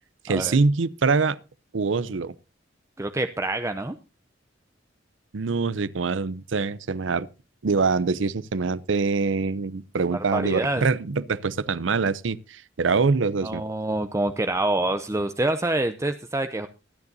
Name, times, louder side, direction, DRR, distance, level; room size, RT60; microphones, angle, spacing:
voice 1, 0.2-1.4 1.7-2.3 5.3-7.3 7.6-13.6, right 4 dB, 85° right, 0.6 m, -24 dB
voice 2, 3.0-4.0 10.1-10.8 13.4-16.7, right 2 dB, 15° right, 0.5 m, -26 dB
24.0 x 9.7 x 2.7 m
head